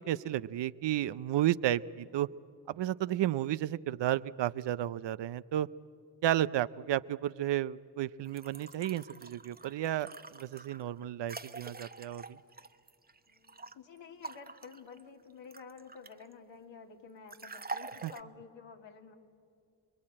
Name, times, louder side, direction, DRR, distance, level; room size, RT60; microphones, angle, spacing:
voice 1, 0.0-2.3 2.8-5.7 6.2-12.4 18.0-18.1, right 12 dB, 65° right, 17 dB, 0.7 m, -32 dB
sound 1, 8.2-13.7 14.2-16.3 17.3-18.2, right 3 dB, 20° right, 1.1 m, -46 dB
voice 2, 13.3-19.1, left 5 dB, 70° left, 3 dB, 2.7 m, -51 dB
28.5 x 21.5 x 8.8 m, 2.4 s
supercardioid pair, 45°, 46 cm